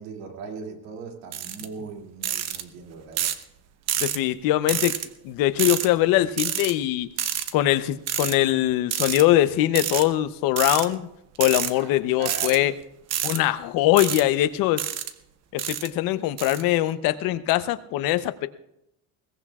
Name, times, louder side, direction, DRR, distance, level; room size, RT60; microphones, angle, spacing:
voice 1, 0.0-3.3 11.7-12.7, right 5 dB, 80° right, 2 dB, 2.7 m, -39 dB
sound 1, 1.3-1.6 2.2-2.6 3.2-3.4 3.9-4.2 4.7-5.1 5.6-5.9 6.4-6.7 7.2-7.5 8.1-8.3 8.9-9.2 9.7-10.0 10.6-10.9 11.3-11.7 12.2-12.6 13.1-13.4 14.0-14.2 14.8-15.1 15.6-15.9 16.4-16.6, right 10 dB, 45° right, 0.9 m, -27 dB
voice 2, 4.0-5.0 5.2-7.1 7.5-11.1 11.4-12.7 13.2-14.8 15.5-18.5, left 14 dB, 65° left, 11 dB, 0.8 m, -22 dB
21.5 x 18.0 x 2.4 m, 0.84 s
cardioid pair, 155°, 37 cm